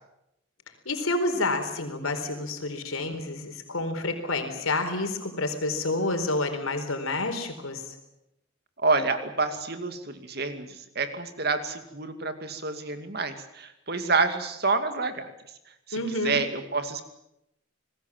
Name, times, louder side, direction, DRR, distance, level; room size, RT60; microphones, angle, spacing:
voice 1, 0.9-7.8 15.9-16.4, left 2 dB, 85° left, 6 dB, 4.4 m, -29 dB
voice 2, 8.8-15.3 15.9-17.0, right 3 dB, 50° right, 8 dB, 2.5 m, -28 dB
28.0 x 20.0 x 7.5 m, 0.85 s
head